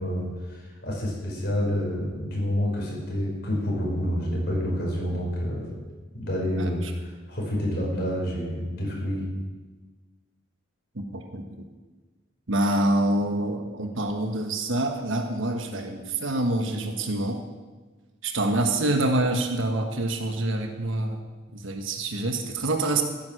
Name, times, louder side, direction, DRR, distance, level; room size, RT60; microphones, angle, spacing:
voice 1, 0.0-5.8 6.1-6.8 7.3-9.2, equal, 55° left, -3 dB, 5.3 m, -28 dB
voice 2, 6.6-6.9 10.9-11.6 12.5-17.4 18.2-21.2 21.5-23.0, right 1 dB, 70° right, 5 dB, 1.3 m, -26 dB
14.5 x 9.4 x 6.5 m, 1.3 s
head